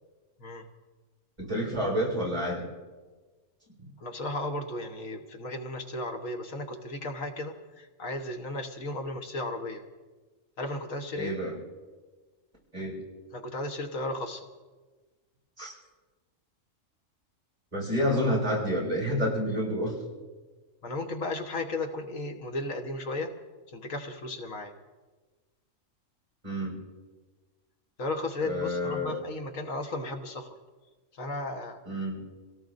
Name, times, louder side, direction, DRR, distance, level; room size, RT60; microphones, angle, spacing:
voice 1, 1.4-2.7 3.8-3.9 11.2-11.6 12.7-13.0 15.6-15.7 17.7-19.9 26.4-26.8 28.4-29.2 31.8-32.3, equal, 30° right, -3 dB, 6.4 m, -29 dB
voice 2, 4.0-9.8 10.6-11.3 13.3-14.5 20.8-23.3 23.7-24.7 28.0-30.5 31.1-31.8, left 2 dB, 85° left, 4 dB, 1.6 m, -35 dB
28.0 x 17.5 x 2.6 m, 1.3 s
omnidirectional pair, 1.3 m